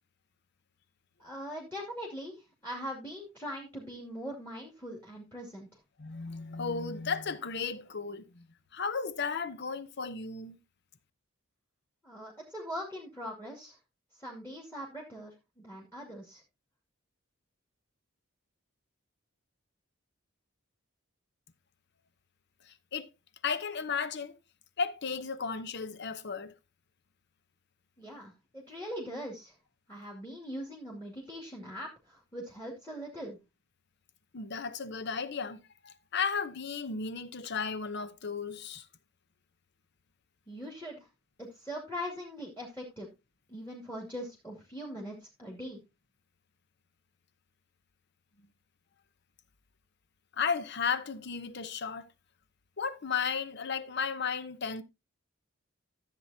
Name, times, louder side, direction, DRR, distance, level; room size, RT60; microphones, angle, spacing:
voice 1, 1.2-5.7 12.0-13.8 14.2-15.3 15.6-16.4 28.0-29.5 29.9-33.4 40.5-41.1 41.4-43.1 43.5-45.8, equal, 10° left, 2.3 m, -41 dB
voice 2, 6.0-8.5 8.7-10.6 22.7-23.1 23.4-24.4 24.8-26.5 34.3-38.9 50.3-52.1 52.8-54.8, left 5 dB, 55° left, 0.8 m, -34 dB
13.5 x 7.6 x 2.7 m
head